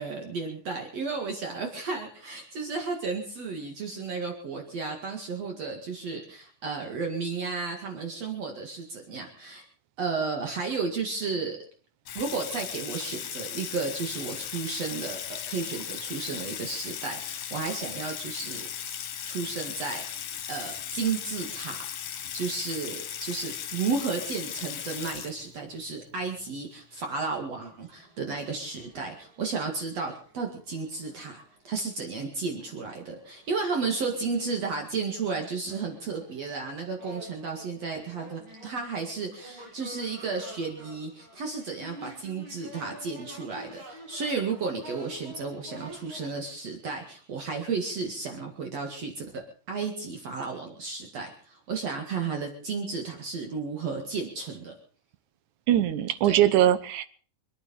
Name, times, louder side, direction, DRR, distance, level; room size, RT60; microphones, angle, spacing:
voice 1, 0.0-9.6 10.0-11.6 12.1-18.7 19.0-21.8 22.3-54.7 56.2-56.4, right 4 dB, 55° right, 3.0 m, -33 dB
Water tap faucet / Sink (filling or washing), 12.1-25.8, left 9 dB, 65° left, 2.5 m, -37 dB
sound 1, 27.7-31.6 32.2-32.3 32.6-46.3, right 1 dB, 40° right, 5.1 m, -49 dB
voice 2, 55.7-57.0, right 12 dB, 75° right, 2.4 m, -21 dB
25.5 x 9.4 x 5.3 m
omnidirectional pair, 3.7 m